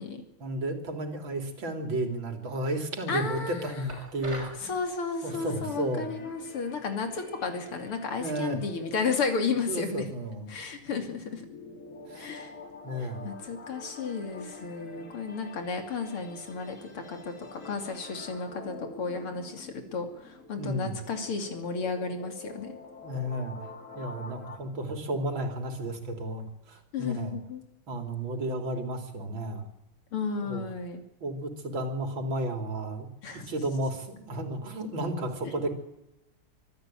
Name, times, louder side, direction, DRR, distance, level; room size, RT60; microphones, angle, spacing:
voice 1, 0.4-4.7 5.2-6.1 8.2-8.6 9.7-10.5 12.1-12.3 12.8-13.3 20.6-21.0 23.0-23.6 24.0-27.3 27.9-29.7 30.4-30.6 31.2-33.1 33.5-35.7, right 1 dB, 65° right, 5 dB, 3.8 m, -33 dB
voice 2, 3.1-3.8 4.3-10.1 10.5-11.4 12.2-12.5 13.0-22.8 26.9-27.6 30.1-31.0 33.2-33.4 35.4-35.5, left 4 dB, 90° left, 5 dB, 3.6 m, -33 dB
sound 1, 3.9-4.6, right 2 dB, 30° right, 5.5 m, -40 dB
sound 2, 5.2-24.6, left 3 dB, 35° left, 2.8 m, -47 dB
25.0 x 14.0 x 8.9 m, 0.94 s
omnidirectional pair, 2.4 m